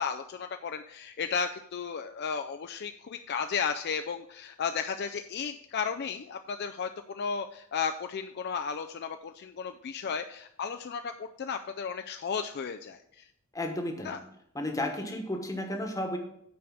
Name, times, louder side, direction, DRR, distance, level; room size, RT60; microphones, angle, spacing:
voice 1, 0.0-13.3 14.0-14.2, left 6 dB, 50° left, 7 dB, 0.4 m, -34 dB
voice 2, 13.5-14.1 14.5-16.2, left 1 dB, 15° left, 4 dB, 1.1 m, -33 dB
9.2 x 4.8 x 6.3 m, 0.74 s
head